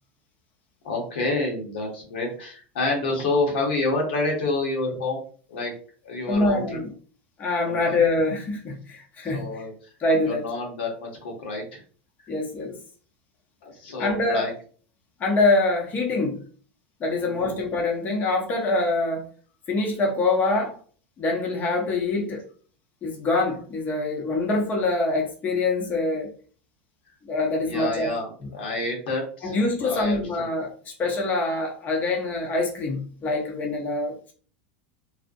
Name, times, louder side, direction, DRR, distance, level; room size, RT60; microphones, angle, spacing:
voice 1, 0.8-5.2 5.5-5.7 6.0-6.8 7.7-8.0 9.3-9.7 10.2-11.8 13.6-14.5 17.2-17.5 27.6-30.5, left 2 dB, 80° left, 1.0 m, -28 dB
voice 2, 6.3-6.9 7.4-9.6 10.0-10.5 12.3-12.8 14.0-14.5 15.2-16.4 17.0-19.2 19.7-20.8 21.2-22.4 23.0-26.3 27.2-28.1 29.4-34.1, left 2 dB, 30° left, 0.7 m, -25 dB
2.5 x 2.1 x 2.4 m
supercardioid pair, 110°, 5 cm